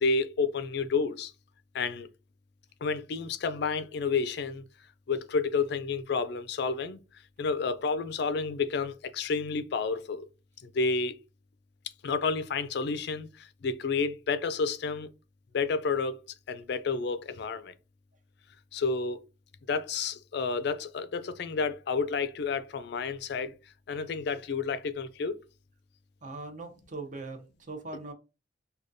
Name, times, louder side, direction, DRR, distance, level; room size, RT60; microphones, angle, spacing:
voice 1, 0.0-1.3 1.7-2.1 2.8-4.6 5.1-7.0 7.4-10.2 10.6-11.2 12.0-15.1 15.5-16.2 16.5-17.7 18.7-19.2 19.7-23.5 23.9-25.4, left 4 dB, 60° left, 0.4 m, -30 dB
voice 2, 26.2-28.1, right 3 dB, 40° right, 0.7 m, -40 dB
4.8 x 2.3 x 2.6 m
head